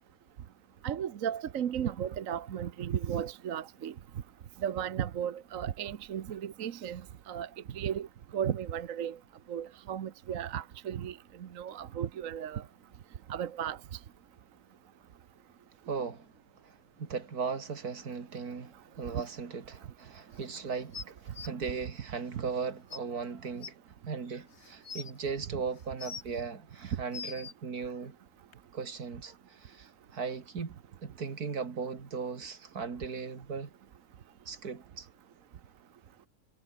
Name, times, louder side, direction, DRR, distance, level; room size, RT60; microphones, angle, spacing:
voice 1, 0.8-3.9 4.6-7.0 7.3-7.5 7.7-8.1 8.3-9.2 9.5-11.2 11.6-12.6 13.3-13.8, right 9 dB, 65° right, 1.3 m, -34 dB
voice 2, 15.9-16.3 17.0-23.7 24.1-28.1 28.7-29.3 29.7-29.9 30.1-30.8 31.0-33.7 34.5-35.1, right 5 dB, 85° right, 2.8 m, -37 dB
sound 1, 20.9-21.5 22.5-22.6 22.9-23.0 23.6-23.7 24.5-25.1 25.8-26.4 26.9-27.5 28.5-28.6, left 6 dB, 50° left, 1.6 m, -42 dB
omnidirectional pair, 1.6 m